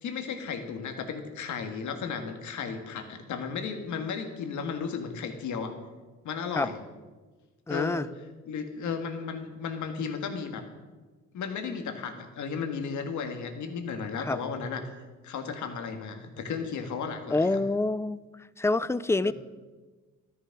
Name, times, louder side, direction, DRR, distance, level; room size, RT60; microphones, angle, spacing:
voice 1, 0.0-5.7 6.2-6.8 7.7-8.1 8.5-10.7 11.3-14.8 15.2-17.6 19.2-19.3, left 6 dB, 75° left, 6 dB, 1.8 m, -34 dB
voice 2, 7.7-8.1 14.2-14.4 17.3-18.2 18.6-19.3, left 2 dB, 10° left, 18 dB, 0.3 m, -26 dB
12.5 x 10.0 x 6.0 m, 1.3 s
cardioid pair, 90°, 30 cm